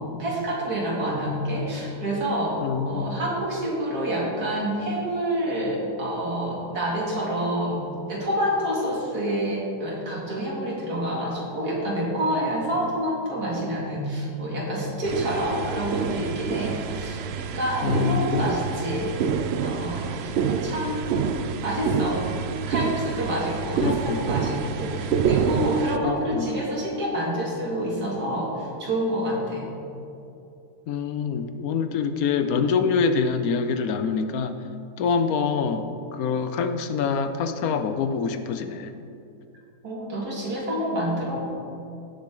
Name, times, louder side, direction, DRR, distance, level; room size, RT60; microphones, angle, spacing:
voice 1, 0.2-7.8 8.1-22.3 22.7-29.7 39.8-41.4, right 1 dB, 70° right, -4 dB, 3.0 m, -28 dB
voice 2, 2.6-3.1 17.8-18.5 23.8-24.3 26.0-26.6 30.9-34.5 35.0-38.9, left 6 dB, 70° left, 9 dB, 1.1 m, -25 dB
sound 1, 15.0-26.0, right 6 dB, 85° right, 0.5 m, -27 dB
16.5 x 7.4 x 3.8 m, 2.6 s
omnidirectional pair, 1.7 m